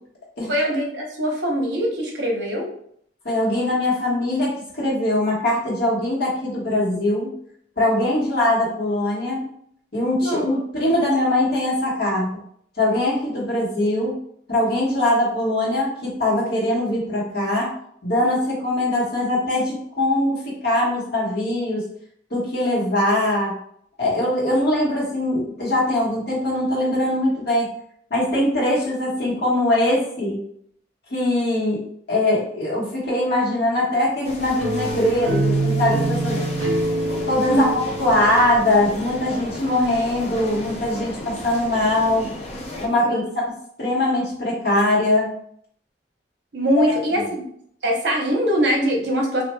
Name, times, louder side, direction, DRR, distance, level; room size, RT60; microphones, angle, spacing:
voice 1, 0.5-2.7 8.0-8.2 10.2-10.4 37.5-37.6 43.0-43.3 46.5-47.5 47.8-49.4, equal, 65° right, -1 dB, 0.9 m, -22 dB
voice 2, 3.2-7.3 7.8-9.5 9.9-12.3 12.8-14.1 14.5-17.7 18.0-21.9 22.3-23.6 24.0-27.7 28.1-30.4 31.1-31.8 32.1-36.4 37.3-42.3 42.8-45.4 46.7-47.2, left 1 dB, 60° left, -5 dB, 1.2 m, -22 dB
sound 1, 34.2-42.9, left 1 dB, 35° left, 0.5 m, -34 dB
sound 2, 34.6-39.5, right 2 dB, 85° right, 0.5 m, -25 dB
4.1 x 2.4 x 2.2 m, 0.66 s
head